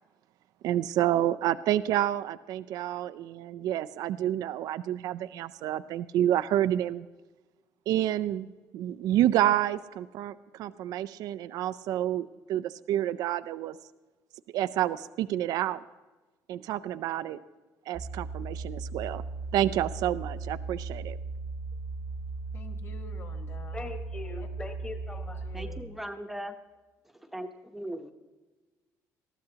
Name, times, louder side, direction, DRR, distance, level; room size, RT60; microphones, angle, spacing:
voice 1, 0.6-7.1 7.9-8.5 8.7-13.8 14.5-15.8 16.5-17.4 17.9-19.2 19.5-21.2, right 12 dB, 75° right, 13 dB, 0.4 m, -29 dB
sound 1, 17.9-25.8, right 3 dB, 35° right, 0.7 m, -37 dB
voice 2, 22.5-23.9 24.4-24.5 25.1-25.9, left 4 dB, 40° left, 5 dB, 1.5 m, -49 dB
voice 3, 23.7-25.5, left 3 dB, 15° left, 4 dB, 1.5 m, -41 dB
voice 4, 25.5-26.6 27.3-28.1, equal, 5° right, 4 dB, 0.9 m, -38 dB
20.0 x 14.0 x 2.8 m, 1.2 s
cardioid pair, 140°, 7 cm